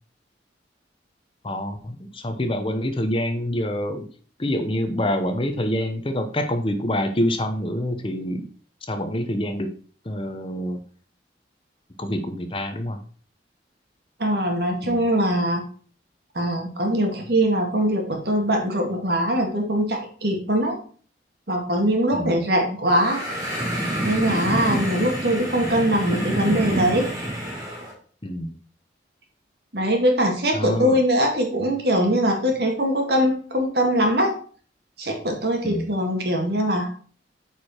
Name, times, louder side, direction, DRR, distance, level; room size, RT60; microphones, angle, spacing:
voice 1, 1.4-4.1 4.4-8.5 8.9-9.7 10.0-10.8 12.0-13.0 14.8-15.0 22.1-22.4 28.2-28.5 30.5-31.0 35.6-35.9, left 1 dB, 30° left, 7 dB, 0.8 m, -26 dB
voice 2, 14.2-15.6 16.4-20.8 21.5-23.2 24.0-27.1 29.7-34.3 35.0-36.9, equal, 60° right, 2 dB, 2.1 m, -22 dB
sound 1, 22.9-27.9, right 1 dB, 15° right, 3.2 m, -27 dB
9.1 x 4.9 x 4.3 m, 0.44 s
head